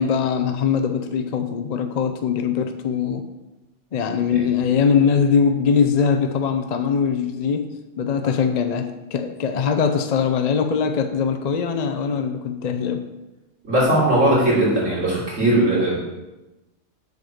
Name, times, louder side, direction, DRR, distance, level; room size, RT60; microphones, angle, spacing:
voice 1, 0.0-3.2 3.9-13.1, left 6 dB, 50° left, 7 dB, 0.5 m, -21 dB
voice 2, 13.6-16.0, right 1 dB, 85° right, -8 dB, 3.6 m, -18 dB
7.0 x 4.9 x 6.3 m, 1.0 s
omnidirectional pair, 1.3 m